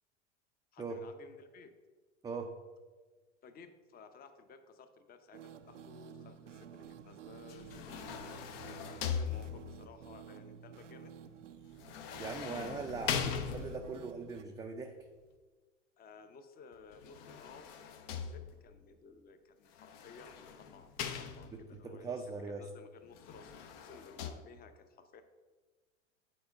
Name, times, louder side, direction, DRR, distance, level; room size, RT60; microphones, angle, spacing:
voice 1, 0.7-1.7 3.4-7.9 8.1-8.6 9.1-11.1 16.0-22.2 22.6-25.2, left 4 dB, 25° left, 8 dB, 0.8 m, -56 dB
sound 1, 5.3-14.4, right 7 dB, 85° right, 0.6 m, -52 dB
sound 2, 7.5-9.9 11.8-14.1 16.9-18.8 19.8-21.8 23.1-24.3, left 7 dB, 55° left, 0.9 m, -40 dB
voice 2, 12.2-14.9 21.5-22.7, right 4 dB, 10° right, 2 dB, 0.4 m, -41 dB
8.7 x 4.3 x 5.2 m, 1.3 s
hypercardioid pair, 90°, 36 cm